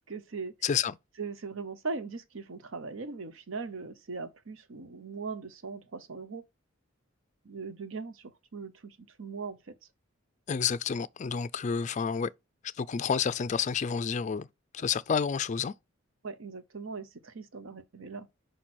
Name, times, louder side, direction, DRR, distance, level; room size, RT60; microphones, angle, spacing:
voice 1, 0.1-0.5 1.2-6.4 7.4-9.7 16.2-18.3, right 4 dB, 80° right, 0.8 m, -40 dB
voice 2, 0.6-0.9 10.5-12.3 12.8-14.5 14.7-15.7, left 6 dB, 35° left, 0.3 m, -29 dB
5.2 x 4.3 x 6.1 m
head